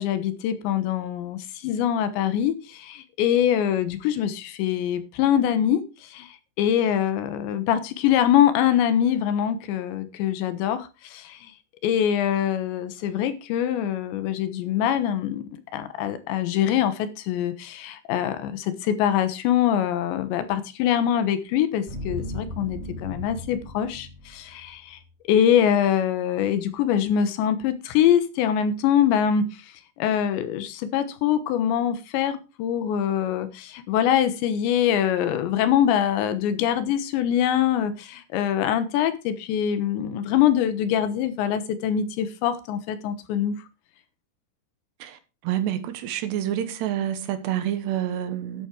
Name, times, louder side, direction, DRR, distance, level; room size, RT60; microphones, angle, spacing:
voice 1, 0.0-6.3 6.6-11.5 11.8-25.0 25.3-29.5 30.0-43.6, left 9 dB, 85° left, 3.5 m, -24 dB
sound 1, 21.9-24.8 25.0-25.1, left 1 dB, 25° right, 1.6 m, -36 dB
voice 2, 45.4-48.7, right 11 dB, 75° right, 3.3 m, -28 dB
11.0 x 8.6 x 4.8 m
omnidirectional pair, 5.0 m